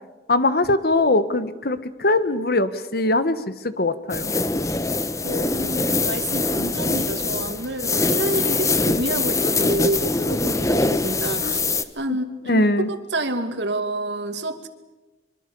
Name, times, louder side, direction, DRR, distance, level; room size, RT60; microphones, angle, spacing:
voice 1, 0.3-3.4 3.6-4.3 11.4-11.6 12.5-12.9, left 2 dB, 60° left, 13 dB, 1.4 m, -21 dB
sound 1, 4.1-11.8, left 3 dB, 20° left, 1.0 m, -23 dB
voice 2, 5.2-11.6 12.0-14.7, right 1 dB, 80° right, 8 dB, 2.3 m, -28 dB
24.5 x 24.0 x 7.0 m, 1.1 s
head